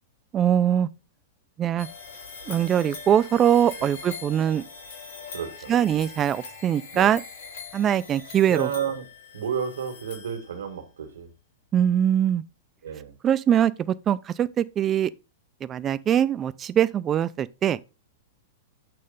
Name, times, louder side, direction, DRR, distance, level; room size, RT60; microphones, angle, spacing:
voice 1, 0.3-0.9 1.6-1.9 2.5-4.6 5.7-7.2 7.7-8.7 11.7-12.4 13.2-15.1 15.6-17.8, right 9 dB, 25° right, 0.4 m, -22 dB
sound 1, 1.8-10.8, left 5 dB, 75° left, 3.5 m, -42 dB
voice 2, 5.3-5.7 6.9-7.1 8.5-9.0 9.3-11.3 12.8-13.1, right 7 dB, 90° right, 1.8 m, -31 dB
8.7 x 3.3 x 5.3 m
hypercardioid pair, 140°, 0 cm